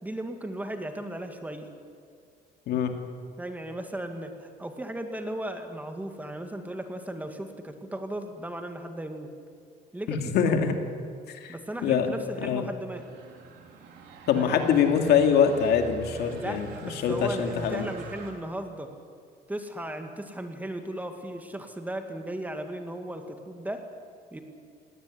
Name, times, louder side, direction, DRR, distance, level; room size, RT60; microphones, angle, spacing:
voice 1, 0.0-1.7 3.4-9.3 9.9-10.7 11.5-13.0 14.4-14.6 16.4-18.9 19.5-23.9 24.3-24.4, right 1 dB, 10° right, 5 dB, 2.1 m, -36 dB
voice 2, 2.7-3.0 10.1-10.7 11.3-11.5 11.8-12.1 12.4-12.7 14.3-16.7 17.0-17.9, left 7 dB, 75° left, 5 dB, 2.4 m, -24 dB
sound 1, 12.9-18.3, right 4 dB, 80° right, 3.8 m, -45 dB
18.5 x 18.0 x 10.0 m, 2.2 s
cardioid pair, 110°, 17 cm